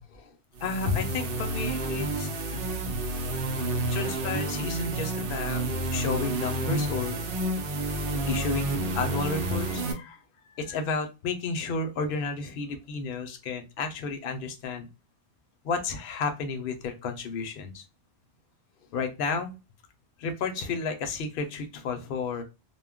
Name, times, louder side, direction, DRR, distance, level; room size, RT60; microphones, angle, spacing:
voice 1, 0.6-2.6 3.9-5.6 5.9-7.2 8.3-8.7 8.9-10.2 10.5-14.9 15.6-17.8 18.9-19.5 20.2-22.4, left 4 dB, 60° left, 6 dB, 0.7 m, -32 dB
sound 1, 0.6-9.9, right 2 dB, 65° right, 0.7 m, -30 dB
2.2 x 2.1 x 3.5 m, 0.27 s
omnidirectional pair, 1.1 m